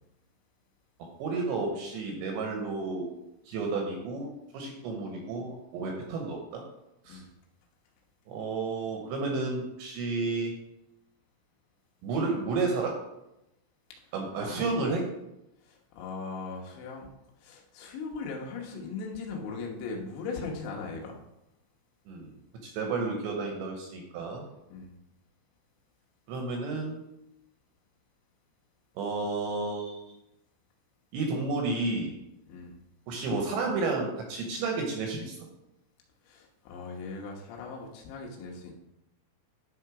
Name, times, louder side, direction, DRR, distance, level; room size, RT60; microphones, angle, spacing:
voice 1, 1.2-3.1 3.5-6.6 7.1-7.2 8.3-10.5 12.0-13.0 14.1-15.1 22.1-22.3 22.6-24.4 26.3-27.0 29.0-30.1 31.1-32.1 33.1-35.4, right 3 dB, 75° right, 1 dB, 2.8 m, -31 dB
voice 2, 15.6-17.1 17.4-21.2 24.7-25.0 32.5-32.8 36.3-38.7, left 4 dB, 80° left, -1 dB, 3.7 m, -39 dB
11.5 x 3.8 x 4.7 m, 0.88 s
omnidirectional pair, 5.9 m